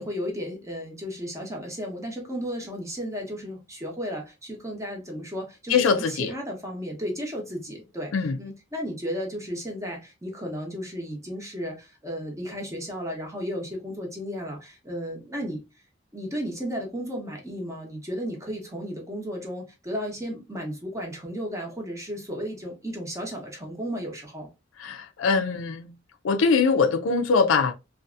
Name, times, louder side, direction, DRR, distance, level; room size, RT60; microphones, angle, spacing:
voice 1, 0.0-15.6 16.1-24.5, equal, 15° right, 0.8 m, -34 dB
voice 2, 5.7-6.3 8.1-8.4 24.8-25.9 26.2-27.7, left 5 dB, 85° left, 0.4 m, -22 dB
2.6 x 2.4 x 2.3 m
head